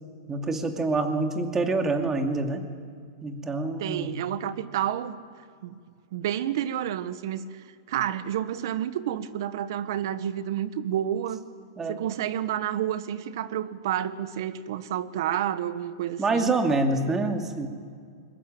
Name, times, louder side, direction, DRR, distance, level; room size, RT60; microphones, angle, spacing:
voice 1, 0.3-2.6 3.2-4.1 11.8-12.0 16.2-17.7, right 3 dB, 15° right, 5 dB, 2.4 m, -26 dB
voice 2, 3.8-5.2 5.6-5.8 6.1-11.4 11.9-16.6, right 10 dB, 65° right, 14 dB, 1.3 m, -30 dB
22.5 x 20.0 x 9.0 m, 2.1 s
hypercardioid pair, 135°, 2 cm